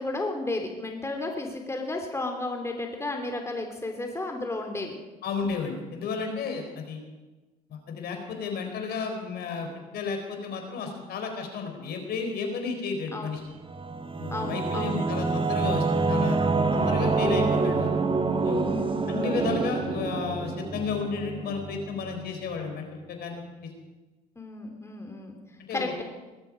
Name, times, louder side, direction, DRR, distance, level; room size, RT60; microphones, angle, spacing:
voice 1, 0.0-5.0 13.1-13.3 14.3-15.1 18.6-19.0 24.4-25.4 25.7-26.0, left 2 dB, 15° left, 3 dB, 3.0 m, -33 dB
voice 2, 5.2-7.0 7.7-9.7 9.9-13.4 14.2-16.4 16.7-17.9 18.4-18.7 19.1-23.7 25.7-25.9, left 5 dB, 55° left, 4 dB, 4.1 m, -32 dB
Singing / Musical instrument, 13.5-22.7, right 4 dB, 25° right, 1.7 m, -27 dB
20.0 x 13.5 x 5.1 m, 1.2 s
hypercardioid pair, 65°, 19 cm